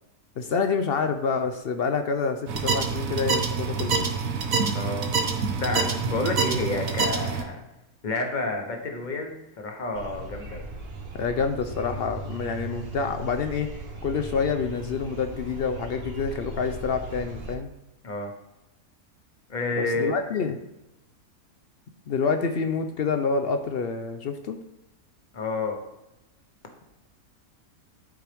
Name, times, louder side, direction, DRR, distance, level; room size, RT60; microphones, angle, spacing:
voice 1, 0.4-4.1 11.1-13.7 14.0-17.7 19.8-20.6 22.1-24.6, left 5 dB, 65° left, 6 dB, 0.6 m, -27 dB
sound 1, 2.5-7.4, right 5 dB, 65° right, 1.3 m, -26 dB
voice 2, 4.7-5.1 5.6-7.6 8.0-10.7 18.0-18.3 19.5-20.2 25.3-25.8, left 2 dB, 35° left, 2 dB, 1.1 m, -29 dB
sound 2, 9.9-17.6, right 2 dB, 45° right, 1.1 m, -38 dB
12.0 x 4.6 x 3.4 m, 0.93 s
omnidirectional pair, 1.6 m